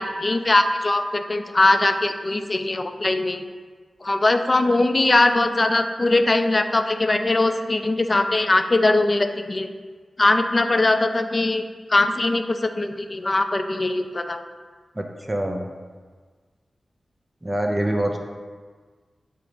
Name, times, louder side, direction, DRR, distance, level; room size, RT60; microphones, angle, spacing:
voice 1, 0.0-3.4 4.0-9.7 10.2-11.6 11.9-14.4, left 2 dB, 40° left, 7 dB, 0.3 m, -21 dB
voice 2, 14.9-15.7 17.4-18.2, right 1 dB, 25° right, 2 dB, 0.5 m, -25 dB
5.6 x 2.0 x 4.7 m, 1.5 s
cardioid pair, 40°, 0 cm